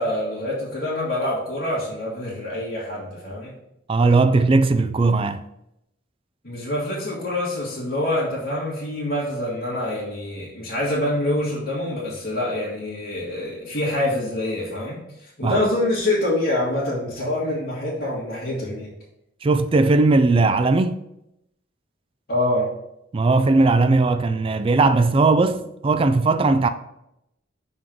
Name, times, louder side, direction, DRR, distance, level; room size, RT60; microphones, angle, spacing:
voice 1, 0.0-3.5 6.4-18.9 22.3-22.7, left 1 dB, 55° left, 1.7 m, -26 dB
voice 2, 3.9-5.4 15.4-15.7 19.4-21.0 23.1-26.7, right 3 dB, 30° right, 0.3 m, -18 dB
6.0 x 3.8 x 5.0 m
head